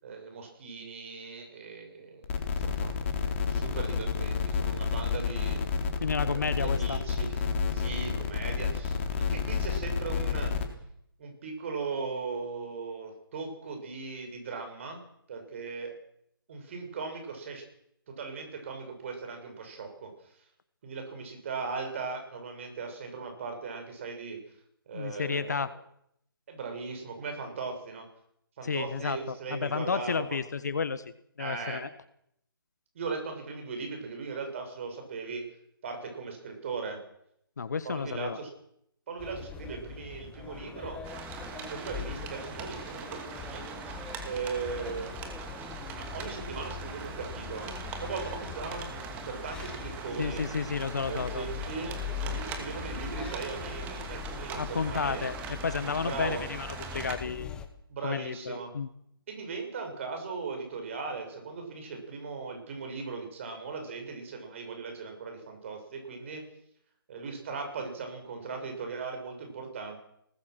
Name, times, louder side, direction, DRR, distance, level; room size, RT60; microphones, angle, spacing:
voice 1, 0.0-3.1 3.5-5.6 6.2-7.5 7.7-10.5 11.2-15.0 15.3-16.0 16.5-17.6 18.2-20.4 20.8-24.4 24.9-25.7 26.5-28.0 28.6-30.4 31.4-31.8 32.9-35.4 35.8-37.0 37.8-38.5 39.1-41.0 41.5-45.2 46.0-49.0 49.3-50.5 51.0-55.3 56.1-56.4 57.9-58.7 59.3-66.4 67.1-70.0, right 4 dB, 35° right, 4 dB, 7.0 m, -38 dB
sound 1, 2.2-10.6, left 5 dB, 30° left, 3.7 m, -30 dB
voice 2, 6.0-7.0 24.9-25.7 28.6-31.0 31.4-31.9 37.6-38.4 50.2-51.4 54.5-56.7 56.9-57.6 58.0-58.9, left 5 dB, 50° left, 15 dB, 1.3 m, -32 dB
sound 2, 39.2-57.7, left 7 dB, 5° left, 1.3 m, -41 dB
sound 3, 41.0-57.2, right 6 dB, 10° right, 2.5 m, -42 dB
27.0 x 19.5 x 6.4 m, 0.74 s
figure-of-eight pair, 145°, 12 cm